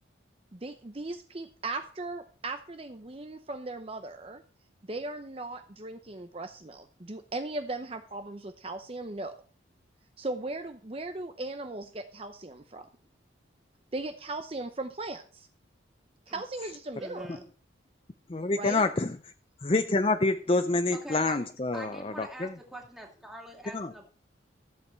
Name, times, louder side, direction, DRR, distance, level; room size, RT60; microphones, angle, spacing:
voice 1, 0.5-4.4 4.8-9.3 10.2-12.9 13.9-15.5 16.3-17.4 18.5-18.8, right 2 dB, 30° right, 7 dB, 0.7 m, -38 dB
voice 2, 17.0-17.5 20.9-21.5 21.7-24.2, equal, ahead, 0 dB, 2.3 m, -45 dB
voice 3, 18.3-19.3 19.6-22.6 23.7-23.9, left 2 dB, 30° left, 9 dB, 0.5 m, -27 dB
14.0 x 7.8 x 4.5 m, 0.42 s
head